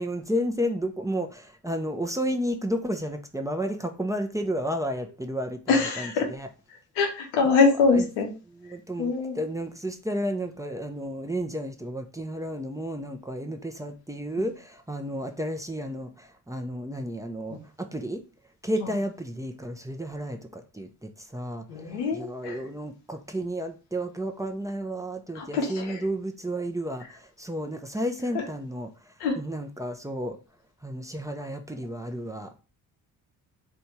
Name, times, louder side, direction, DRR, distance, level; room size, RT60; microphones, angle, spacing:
voice 1, 0.0-6.5 7.4-7.6 7.9-8.0 8.5-18.2 18.6-30.4 30.8-32.5, equal, 5° right, 0.6 m, -32 dB
voice 2, 5.7-6.3 7.0-8.3 9.0-9.4 17.5-17.6 18.8-18.9 21.7-22.6 25.4-26.0 29.2-29.4, left 4 dB, 90° left, 0.9 m, -24 dB
3.5 x 2.6 x 4.3 m
hypercardioid pair, 50°, 45 cm